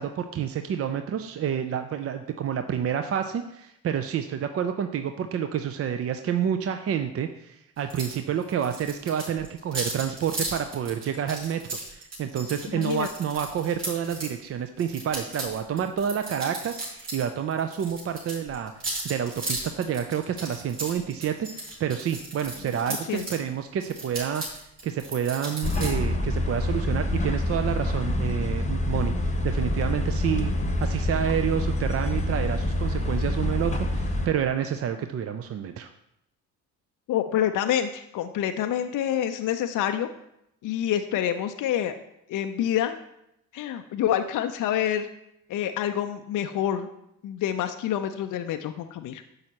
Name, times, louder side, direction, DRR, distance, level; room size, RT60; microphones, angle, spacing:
voice 1, 0.0-30.5 30.8-35.9, right 8 dB, 35° right, 7 dB, 0.5 m, -29 dB
sound 1, 7.9-8.2 8.4-14.3 14.8-17.3 17.5-23.4 23.8-25.9, right 2 dB, 60° right, 3.0 m, -36 dB
voice 2, 12.7-13.1 22.9-23.4 37.1-40.1 40.6-41.9 42.3-43.0 43.5-45.1 45.5-46.9 47.2-49.2, left 10 dB, 45° left, 7 dB, 0.5 m, -27 dB
sound 2, 25.6-34.3, left 1 dB, 15° left, 1.0 m, -26 dB
10.0 x 6.5 x 2.9 m, 0.80 s
figure-of-eight pair, 45°, 45 cm